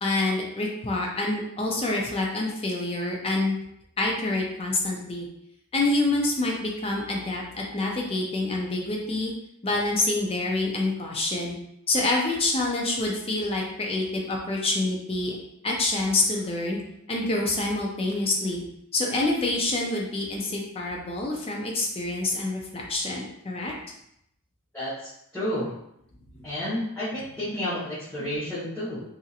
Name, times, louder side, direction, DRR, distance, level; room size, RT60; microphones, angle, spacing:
voice 1, 0.0-3.6 4.0-5.3 5.7-9.3 9.6-11.6 11.9-15.4 15.6-16.8 17.1-18.6 18.9-23.7 26.3-26.5, left 2 dB, 25° left, -1 dB, 0.5 m, -27 dB
voice 2, 24.7-25.7 26.4-29.0, left 1 dB, 10° left, -15 dB, 0.9 m, -31 dB
2.8 x 2.7 x 2.4 m, 0.76 s
head